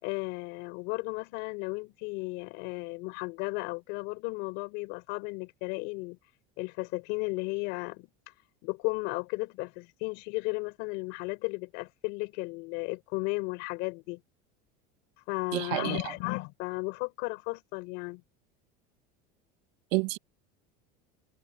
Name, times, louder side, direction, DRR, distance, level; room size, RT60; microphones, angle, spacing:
voice 1, 0.0-6.2 6.6-8.1 8.6-14.2 15.3-18.2, left 27 dB, 60° left, 5.3 m, -34 dB
voice 2, 15.5-16.1 19.9-20.2, right 23 dB, 80° right, 1.8 m, -29 dB
cardioid pair, 150°, 21 cm